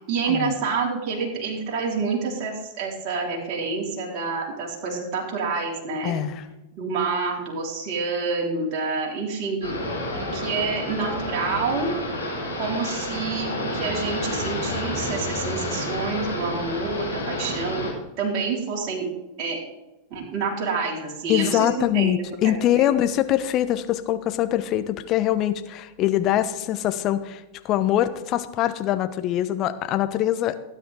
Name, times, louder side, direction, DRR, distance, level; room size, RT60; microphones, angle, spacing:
voice 1, 0.1-6.1 6.7-12.0 12.5-17.9 18.2-19.1 19.4-19.6 20.1-22.1 22.4-22.9, right 4 dB, 40° right, -3 dB, 4.4 m, -28 dB
voice 2, 6.0-6.5 21.3-30.5, left 12 dB, 35° left, 11 dB, 1.0 m, -23 dB
sound 1, 9.6-17.9, left 1 dB, 80° left, 4.5 m, -30 dB
18.5 x 9.7 x 3.8 m, 0.98 s
figure-of-eight pair, 90°, 0 cm